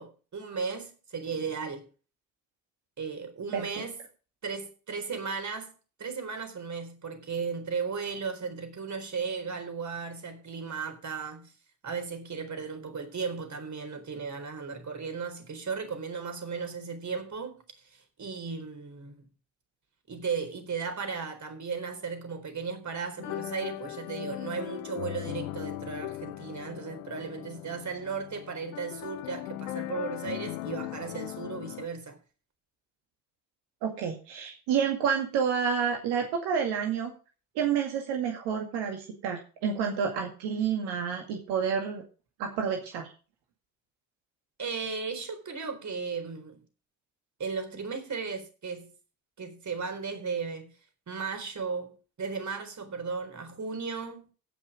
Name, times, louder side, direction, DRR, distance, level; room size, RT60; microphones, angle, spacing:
voice 1, 0.0-1.9 3.0-4.0 4.4-5.7 6.0-11.5 11.8-19.2 20.1-32.2 44.6-46.6 47.4-48.9 49.4-50.7 51.1-54.3, right 5 dB, 40° right, 4.2 m, -36 dB
sound 1, 23.2-31.9, left 17 dB, 80° left, 0.8 m, -38 dB
voice 2, 33.8-37.1 37.6-42.0 42.4-43.1, right 7 dB, 70° right, 2.2 m, -29 dB
16.5 x 6.1 x 5.1 m
hypercardioid pair, 50°, 42 cm